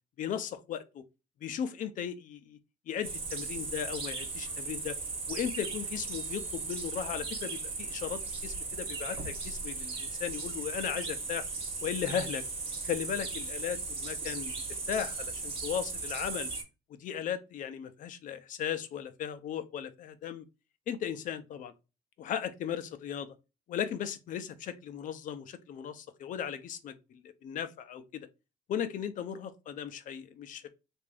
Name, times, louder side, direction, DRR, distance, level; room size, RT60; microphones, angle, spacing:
voice 1, 0.2-1.0 1.4-2.6 2.9-5.0 5.3-11.4 11.8-12.4 12.8-14.5 14.9-16.5 17.0-20.4 20.9-21.7 22.2-23.3 23.7-26.9 27.2-28.3 28.7-30.7, left 9 dB, 55° left, 0.6 m, -36 dB
sound 1, 3.0-16.6, right 3 dB, 35° right, 1.1 m, -37 dB
3.5 x 2.6 x 3.3 m
cardioid pair, 115°, 16 cm